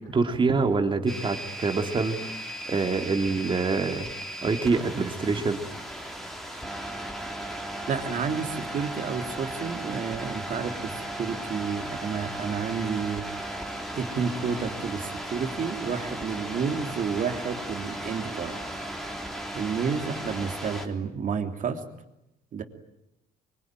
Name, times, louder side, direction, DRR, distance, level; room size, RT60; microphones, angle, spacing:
voice 1, 0.1-2.3 2.7-4.1 4.4-5.6, right 4 dB, 30° right, 5 dB, 3.1 m, -25 dB
sound 1, 1.1-20.9, right 1 dB, ahead, 3.4 m, -36 dB
voice 2, 7.9-13.2 13.9-18.6 19.5-21.8 22.5-22.6, right 6 dB, 50° right, 5 dB, 3.2 m, -30 dB
24.5 x 23.5 x 9.1 m, 0.89 s
cardioid pair, 110°, 17 cm